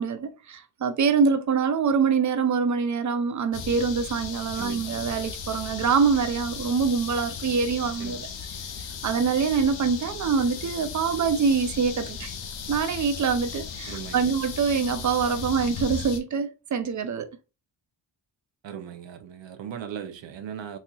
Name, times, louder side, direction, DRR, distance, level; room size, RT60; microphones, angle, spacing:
voice 1, 0.0-8.3 9.0-12.3 12.7-17.3, right 5 dB, 45° right, 0.4 m, -25 dB
sound 1, 3.5-16.2, left 6 dB, 80° left, 0.6 m, -36 dB
voice 2, 4.5-5.0 8.0-8.2 13.9-14.4 18.6-20.8, right 8 dB, 85° right, 0.6 m, -38 dB
4.2 x 2.7 x 2.3 m
wide cardioid pair, 160°, 43 cm